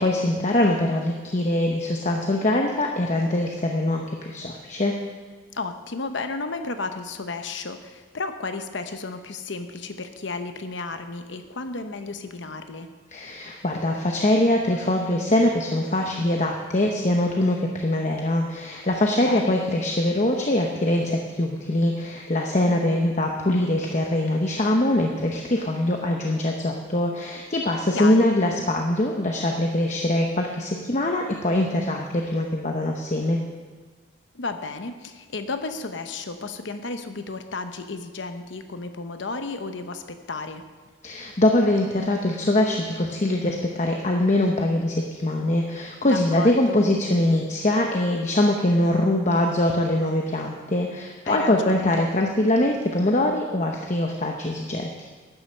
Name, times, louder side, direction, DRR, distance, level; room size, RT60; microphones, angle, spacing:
voice 1, 0.0-4.9 13.1-33.4 41.0-55.1, left 1 dB, 35° left, 1 dB, 0.8 m, -23 dB
voice 2, 5.5-12.9 19.2-19.6 27.9-28.3 34.3-40.6 46.0-46.8 51.2-51.9, left 3 dB, 65° left, 8 dB, 0.8 m, -33 dB
11.0 x 9.3 x 6.5 m, 1.4 s
head